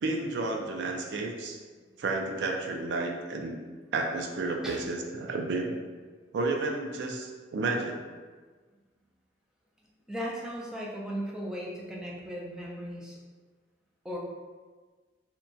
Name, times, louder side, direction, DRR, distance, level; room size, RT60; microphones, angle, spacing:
voice 1, 0.0-1.6 2.0-3.6 3.9-5.8 6.3-8.1, right 3 dB, 75° right, 1 dB, 0.4 m, -31 dB
voice 2, 10.1-13.2 14.0-14.2, equal, 5° right, -4 dB, 0.4 m, -36 dB
2.8 x 2.2 x 2.7 m, 1.4 s
head